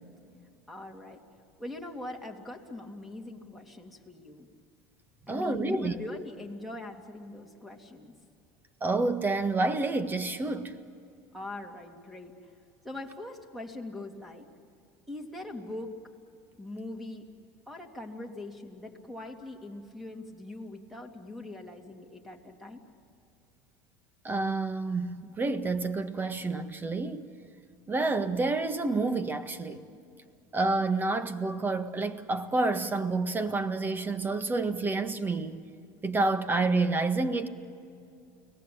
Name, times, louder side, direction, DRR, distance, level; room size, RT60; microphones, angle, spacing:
voice 1, 0.7-1.2 1.6-4.5 5.3-8.1 11.3-12.5 12.8-14.5 15.1-15.9 16.6-17.2 17.7-22.8, left 2 dB, ahead, 3.0 m, -42 dB
voice 2, 5.3-6.0 8.8-10.8 24.2-27.3 27.9-29.8 30.5-35.6 36.0-37.5, right 3 dB, 20° right, 1.6 m, -29 dB
30.0 x 19.0 x 8.8 m
supercardioid pair, 115°, 10 cm